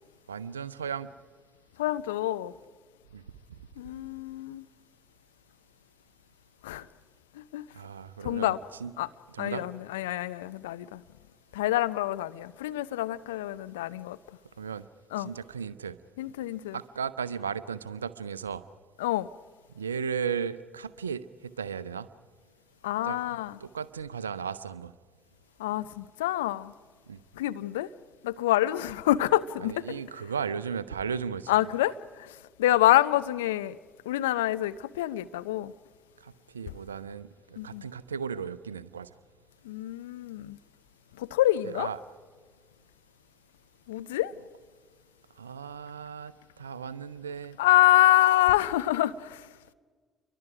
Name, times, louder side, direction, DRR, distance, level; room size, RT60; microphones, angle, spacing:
voice 1, 0.3-1.1 3.1-3.2 7.7-8.5 8.8-8.9 9.3-9.7 14.6-14.9 15.2-16.0 16.7-18.6 19.7-22.1 23.0-23.2 23.6-24.9 27.1-27.2 29.6-31.6 36.2-39.1 41.6-42.0 45.4-47.6, right 6 dB, 85° right, 17 dB, 0.6 m, -35 dB
voice 2, 1.8-2.5 3.8-4.6 6.6-6.9 7.3-7.7 8.2-8.6 9.0-9.1 9.4-11.0 11.5-14.2 15.1-15.3 16.2-16.8 19.0-19.3 22.8-23.6 25.6-26.7 27.3-27.9 28.2-29.8 31.5-33.8 34.1-35.7 37.6-37.8 39.6-40.6 41.2-41.9 43.9-44.3 47.6-49.5, left 15 dB, 80° left, 14 dB, 0.5 m, -26 dB
29.0 x 23.0 x 5.0 m, 1.6 s
figure-of-eight pair, 50°, 0 cm